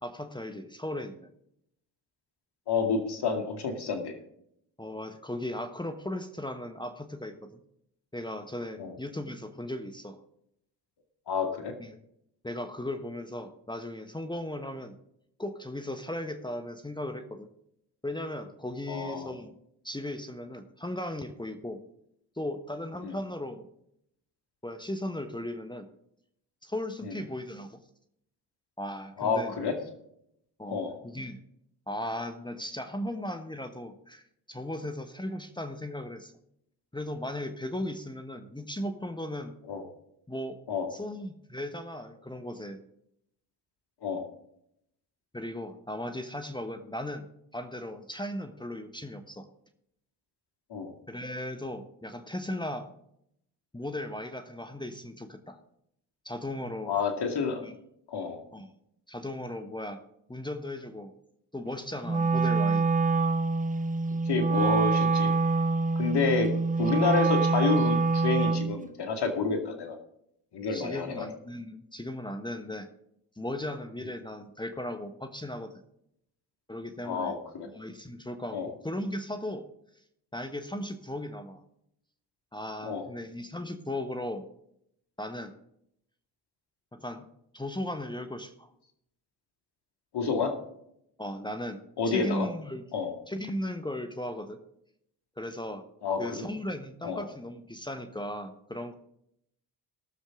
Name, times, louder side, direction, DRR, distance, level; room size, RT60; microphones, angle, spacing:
voice 1, 0.0-1.3 4.8-7.6 8.1-10.2 11.8-11.9 12.4-14.9 15.4-17.5 18.0-19.5 19.8-21.8 22.4-23.6 24.6-25.9 26.6-27.8 28.8-29.5 30.6-31.4 31.9-34.2 34.5-36.3 36.9-39.5 40.3-40.6 40.9-42.8 45.3-47.3 47.5-49.5 51.1-52.9 53.7-55.6 56.2-57.0 57.6-57.7 58.5-58.7 59.1-60.0 60.3-61.1 61.5-62.9 70.7-72.9 73.4-75.7 76.7-77.3 77.7-79.6 80.3-81.6 82.5-84.5 85.2-85.6 86.9-87.3 87.5-88.7 91.2-91.8 92.1-92.8 93.3-94.6 95.4-95.8 96.2-98.9, left 1 dB, 10° left, 7 dB, 1.2 m, -37 dB
voice 2, 2.7-4.1 8.8-8.9 11.3-11.7 18.9-19.3 23.0-23.2 27.0-27.2 29.2-29.7 30.7-30.9 39.7-39.8 40.7-40.9 44.0-44.2 50.7-50.9 56.9-57.7 58.1-58.4 64.3-65.3 66.0-66.5 66.8-70.0 70.5-71.3 77.0-77.7 78.5-78.7 82.8-83.0 90.1-90.5 92.0-92.5 92.9-93.1 96.0-96.4 97.0-97.2, left 4 dB, 55° left, 4 dB, 2.3 m, -29 dB
Wind instrument woodwind instrument, 62.0-68.8, right 3 dB, 15° right, 0.9 m, -25 dB
18.5 x 7.2 x 3.7 m, 0.75 s
supercardioid pair, 60°, 47 cm